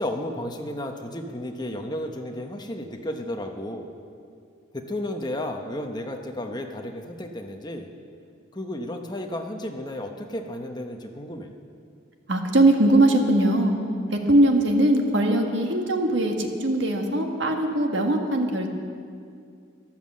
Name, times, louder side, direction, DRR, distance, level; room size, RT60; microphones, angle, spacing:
voice 1, 0.0-3.9 4.7-7.9 8.5-11.5, left 1 dB, 20° left, 4 dB, 0.9 m, -33 dB
voice 2, 12.3-13.7 14.3-18.7, right 1 dB, 65° right, 3 dB, 1.5 m, -21 dB
13.0 x 11.5 x 7.5 m, 2.3 s
head